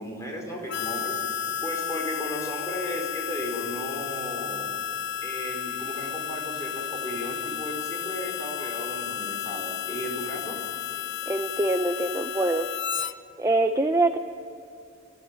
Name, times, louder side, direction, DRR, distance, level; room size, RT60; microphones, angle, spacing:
voice 1, 0.0-4.6 5.2-10.6, equal, 15° left, 0 dB, 4.9 m, -35 dB
Harmonica, 0.7-13.1, left 9 dB, 60° left, 0.7 m, -32 dB
voice 2, 11.3-12.7 13.0-13.1 13.4-14.2, right 2 dB, 15° right, 5 dB, 0.7 m, -24 dB
22.0 x 14.0 x 9.1 m, 2.6 s
head